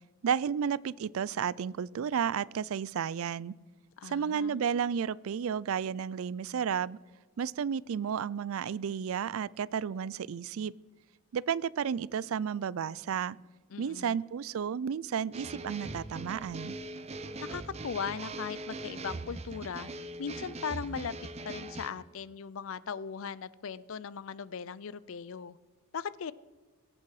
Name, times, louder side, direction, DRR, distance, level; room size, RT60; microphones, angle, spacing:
voice 1, 0.2-3.5 4.0-7.0 7.4-10.7 11.3-13.4 13.8-16.8, right 7 dB, 70° right, 22 dB, 0.4 m, -32 dB
voice 2, 4.0-4.6 13.7-14.2 17.4-19.9 20.2-21.1 21.4-25.6 25.9-26.3, left 6 dB, 65° left, 19 dB, 0.5 m, -38 dB
sound 1, 15.3-21.9, right 2 dB, 30° right, 0.6 m, -41 dB
22.5 x 8.6 x 4.8 m, 1.3 s
head